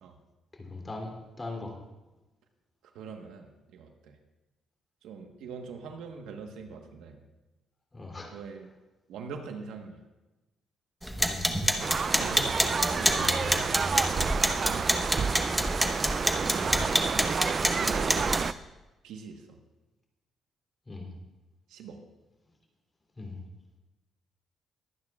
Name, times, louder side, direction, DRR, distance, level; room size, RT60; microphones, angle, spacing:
voice 1, 0.5-1.8 7.9-8.3 11.2-11.5 16.6-17.1 20.9-21.1 23.2-23.4, left 3 dB, 25° left, 0 dB, 3.1 m, -40 dB
voice 2, 2.9-4.2 5.0-7.2 8.3-8.7 9.1-10.0 11.4-15.6 17.7-18.2 19.0-19.6 21.7-22.0, right 5 dB, 85° right, 4 dB, 1.2 m, -43 dB
sound 1, 11.0-18.5, equal, ahead, 1.2 m, -28 dB
sound 2, 11.8-18.5, right 5 dB, 45° right, 0.3 m, -30 dB
22.5 x 9.3 x 2.4 m, 1.1 s
cardioid pair, 90°, 0 cm